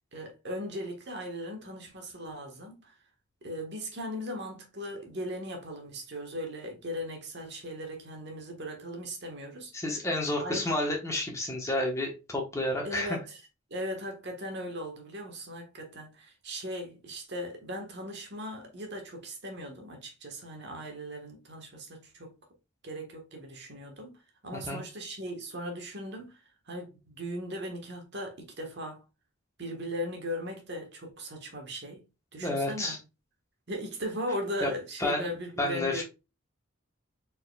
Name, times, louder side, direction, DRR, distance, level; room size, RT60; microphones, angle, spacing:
voice 1, 0.1-2.9 3.4-9.7 10.3-10.7 12.8-13.4 13.7-22.3 22.8-24.2 24.4-29.0 29.6-32.0 32.3-33.0 33.7-36.0, equal, 55° right, 1.3 m, -38 dB
voice 2, 9.7-13.2 24.7-24.8 32.4-33.0 34.6-34.7 35.0-35.3 35.6-36.0, left 1 dB, 15° left, 1.0 m, -30 dB
4.5 x 4.3 x 2.3 m
head